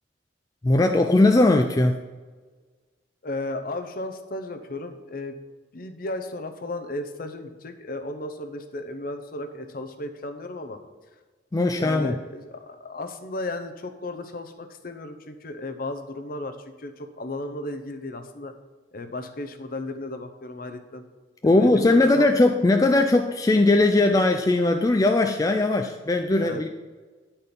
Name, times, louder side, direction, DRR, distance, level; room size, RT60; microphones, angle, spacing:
voice 1, 0.6-2.0 11.5-12.2 21.4-26.7, left 2 dB, 20° left, 5 dB, 0.3 m, -19 dB
voice 2, 3.2-5.3 5.7-10.8 11.8-18.5 18.9-21.0 21.4-21.9 22.2-22.3 26.3-26.7, left 2 dB, 50° left, 8 dB, 0.7 m, -35 dB
9.7 x 4.4 x 5.2 m, 1.4 s
head